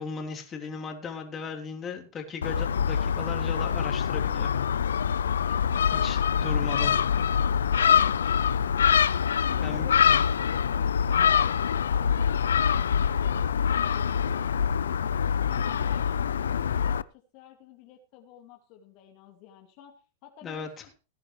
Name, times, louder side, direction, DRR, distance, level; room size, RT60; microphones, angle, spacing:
voice 1, 0.0-4.5 6.0-7.0 9.6-9.9 20.4-20.7, left 5 dB, 25° left, 2 dB, 3.3 m, -36 dB
Gull seagull, 2.4-17.0, left 7 dB, 85° left, 0.5 m, -25 dB
voice 2, 9.0-15.1 15.5-20.9, left 11 dB, 50° left, 3 dB, 2.4 m, -50 dB
18.0 x 10.5 x 3.3 m, 0.35 s
hypercardioid pair, 110°, 0 cm